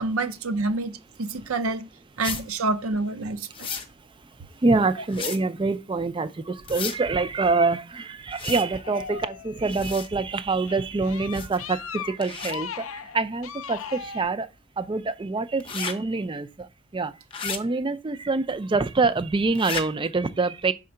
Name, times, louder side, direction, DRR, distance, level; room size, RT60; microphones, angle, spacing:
voice 1, 0.0-1.9 2.2-3.7, right 3 dB, 75° right, 0.6 m, -28 dB
sound 1, 2.2-2.4 3.5-3.9 5.1-5.4 6.6-7.0 8.3-8.7 9.7-10.1 11.3-11.6 12.2-12.5 15.6-15.9 17.3-17.6 19.6-19.8, left 6 dB, 25° left, 0.7 m, -33 dB
voice 2, 3.8-14.5 14.8-20.7, right 3 dB, 25° right, 0.4 m, -26 dB
sound 2, 8.6-10.0 10.5-14.2, left 7 dB, 70° left, 0.5 m, -38 dB
5.2 x 3.7 x 5.6 m
head